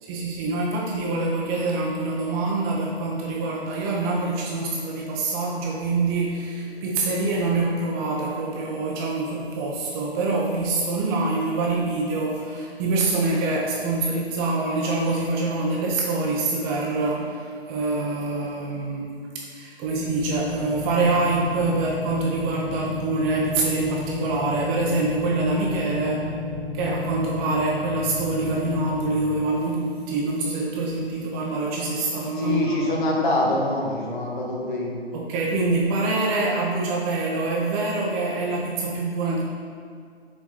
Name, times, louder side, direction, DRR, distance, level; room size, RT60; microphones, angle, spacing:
voice 1, 0.0-19.1 19.4-26.3 26.7-32.9 35.1-39.4, right 3 dB, 25° right, -3 dB, 1.0 m, -25 dB
sound 1, 19.9-29.2, left 3 dB, ahead, 1.4 m, -32 dB
voice 2, 32.4-34.9, left 1 dB, 50° left, -3 dB, 2.0 m, -24 dB
6.7 x 4.6 x 6.1 m, 2.1 s
figure-of-eight pair, 135°, 32 cm